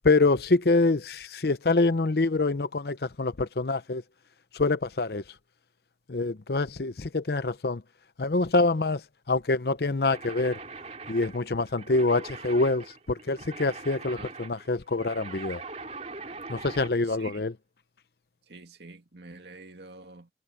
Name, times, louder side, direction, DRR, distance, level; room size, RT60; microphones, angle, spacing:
voice 1, 0.0-4.0 4.5-5.2 6.1-7.8 8.2-9.0 9.3-10.6 11.1-15.6 16.5-17.5, left 3 dB, 65° left, 0.8 m, -25 dB
sound 1, 10.1-17.0, right 4 dB, 40° right, 3.3 m, -42 dB
voice 2, 17.1-17.4 18.5-20.3, right 3 dB, 75° right, 2.2 m, -47 dB
head